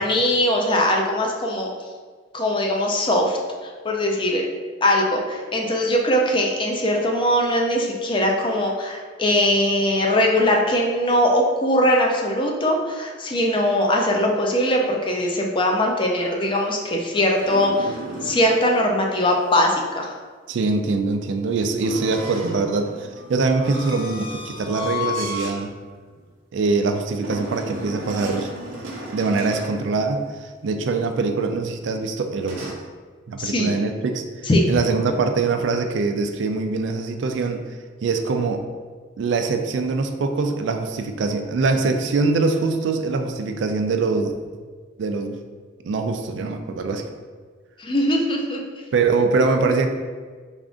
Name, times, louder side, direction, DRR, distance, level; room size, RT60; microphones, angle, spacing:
voice 1, 0.0-1.7 2.3-4.5 4.8-18.0 18.2-20.1 33.4-33.7 34.5-34.6 47.8-48.6, left 1 dB, 25° left, 0 dB, 0.4 m, -21 dB
sound 1, 16.2-18.5 21.8-25.6 26.1-26.2 27.2-29.8 32.4-32.7, left 1 dB, 85° right, 0.7 m, -34 dB
voice 2, 20.5-25.7 26.5-28.5 29.1-32.8 33.3-37.6 38.0-38.6 39.2-44.3 45.0-45.4 45.8-47.1 48.9-49.9, right 3 dB, 70° right, 6 dB, 0.3 m, -23 dB
3.5 x 2.4 x 3.6 m, 1.5 s
head